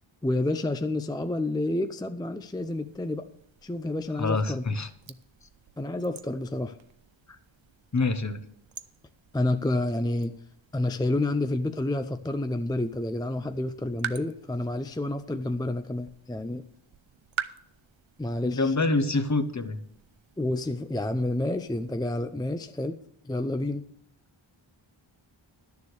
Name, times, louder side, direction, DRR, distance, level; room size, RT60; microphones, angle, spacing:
voice 1, 0.2-3.3 3.6-4.6 5.8-6.8 9.3-10.3 10.7-16.6 18.2-18.7 20.4-23.0 23.2-23.9, left 2 dB, 10° left, 8 dB, 0.5 m, -29 dB
sound 1, 2.4-22.0, right 9 dB, 65° right, 0.7 m, -46 dB
voice 2, 4.2-4.9 7.9-8.4 18.4-19.8, left 3 dB, 35° left, 11 dB, 1.0 m, -26 dB
11.5 x 7.0 x 6.5 m, 0.71 s
wide cardioid pair, 90°, 49 cm